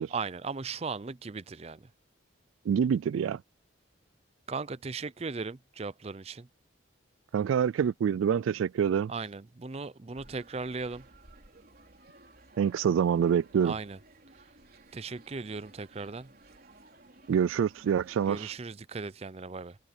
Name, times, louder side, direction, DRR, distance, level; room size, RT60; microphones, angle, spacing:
voice 1, 0.1-1.9 4.5-6.5 9.1-11.0 13.6-14.0 14.9-16.3 18.3-19.8, right 4 dB, 30° right, 0.5 m, -37 dB
voice 2, 2.7-3.4 7.3-9.1 12.6-13.7 17.3-18.5, right 7 dB, 90° right, 0.3 m, -26 dB
sound 1, 10.1-18.6, right 2 dB, 50° right, 4.0 m, -56 dB
head